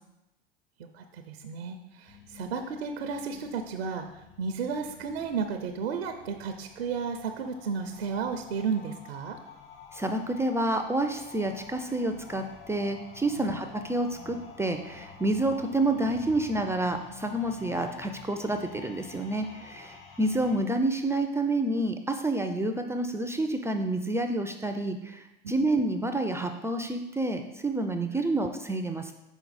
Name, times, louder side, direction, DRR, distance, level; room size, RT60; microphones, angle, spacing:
voice 1, 0.9-9.4 13.4-13.6 28.3-28.4, right 5 dB, 90° right, 5 dB, 0.6 m, -33 dB
sound 1, 2.1-20.6, left 6 dB, 45° left, 1.2 m, -49 dB
voice 2, 9.9-29.1, right 2 dB, 10° right, 6 dB, 0.3 m, -29 dB
6.0 x 4.1 x 4.0 m, 0.95 s
hypercardioid pair, 95°, 30 cm